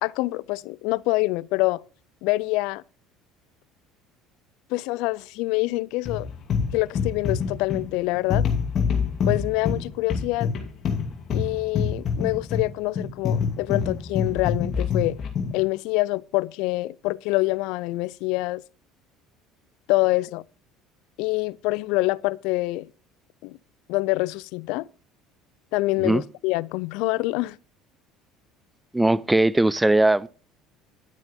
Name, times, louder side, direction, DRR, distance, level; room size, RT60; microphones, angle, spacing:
voice 1, 0.0-1.8 2.2-2.8 4.7-6.3 6.7-8.4 9.3-10.5 11.3-15.2 15.5-18.6 19.9-20.4 21.2-22.9 23.4-23.6 23.9-24.9 25.7-27.6, left 21 dB, 70° left, 0.4 m, -25 dB
sound 1, 6.1-15.6, left 6 dB, 50° left, 2.4 m, -26 dB
voice 2, 28.9-30.3, right 2 dB, 10° right, 0.5 m, -19 dB
10.5 x 9.0 x 3.6 m
hypercardioid pair, 75°, 0 cm